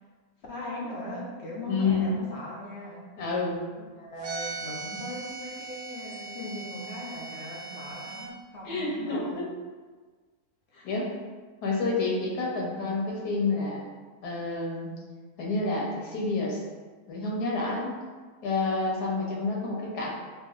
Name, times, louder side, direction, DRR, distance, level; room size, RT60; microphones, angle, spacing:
voice 1, 0.5-3.1 3.8-9.4 10.7-10.9 19.4-19.7, left 1 dB, 55° left, -4 dB, 0.8 m, -39 dB
voice 2, 1.7-2.2 3.2-3.6 8.6-9.4 10.8-11.1 11.6-13.8 14.2-14.9 15.4-16.6 17.1-18.0 18.4-20.1, left 3 dB, 80° left, -2 dB, 1.4 m, -29 dB
sound 1, 4.2-8.3, right 4 dB, 75° right, 1.3 m, -39 dB
5.7 x 2.6 x 2.4 m, 1.4 s
omnidirectional pair, 1.7 m